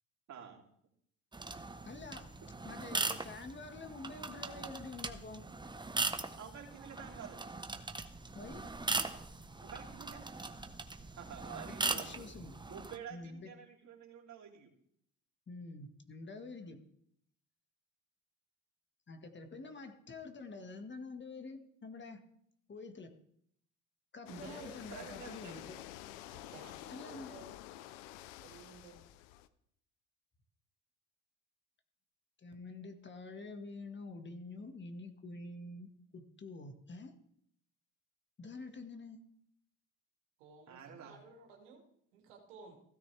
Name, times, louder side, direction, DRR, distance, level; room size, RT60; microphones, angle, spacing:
voice 1, 0.3-0.6 6.4-7.4 9.6-10.3 11.2-12.3 12.7-14.7 24.9-25.7 40.7-41.1, right 7 dB, 55° right, 1 dB, 3.0 m, -49 dB
sound 1, 1.3-13.0, right 3 dB, 15° right, 1.1 m, -40 dB
voice 2, 1.8-2.3 2.6-5.4 8.4-8.7 11.5-12.5 13.1-13.5 15.5-16.8 19.1-22.2 22.7-23.1 24.1-25.8 26.9-27.4 32.4-37.1 38.4-39.3, left 3 dB, 30° left, 6 dB, 1.8 m, -47 dB
sound 2, 24.3-29.5, left 14 dB, 80° left, 0.7 m, -49 dB
voice 3, 24.3-25.0 26.3-27.6 28.4-29.0 40.4-41.8 42.1-42.8, right 4 dB, 85° right, 1 dB, 2.7 m, -54 dB
16.0 x 13.5 x 3.5 m, 0.70 s
hypercardioid pair, 65°, 35 cm